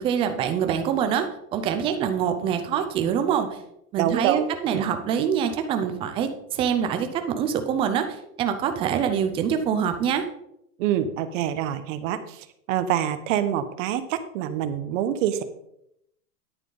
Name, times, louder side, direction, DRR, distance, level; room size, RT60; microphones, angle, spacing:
voice 1, 0.0-3.6 3.9-10.3, right 8 dB, 15° right, 7 dB, 0.4 m, -25 dB
voice 2, 4.0-4.4 4.7-4.8 10.8-15.4, right 10 dB, 50° right, 11 dB, 1.2 m, -26 dB
10.5 x 8.8 x 3.9 m, 0.78 s
hypercardioid pair, 135°, 48 cm